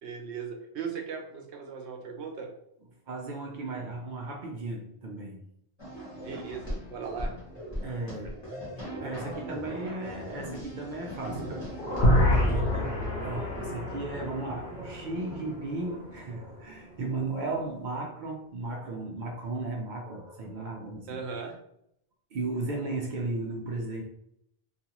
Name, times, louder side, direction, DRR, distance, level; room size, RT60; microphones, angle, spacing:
voice 1, 0.0-2.5 6.2-7.3 21.1-21.6, right 6 dB, 80° right, 3 dB, 0.9 m, -38 dB
voice 2, 3.1-5.5 7.8-8.5 8.8-11.7 12.2-21.2 22.3-24.0, right 2 dB, 60° right, 0 dB, 0.5 m, -35 dB
sound 1, 5.8-14.1, equal, 25° left, 1.0 m, -39 dB
sound 2, 11.2-17.2 17.6-17.7, equal, 45° left, 0.9 m, -36 dB
sound 3, 12.0-14.7, left 1 dB, 80° left, 0.9 m, -26 dB
2.5 x 2.4 x 2.8 m, 0.75 s
omnidirectional pair, 1.1 m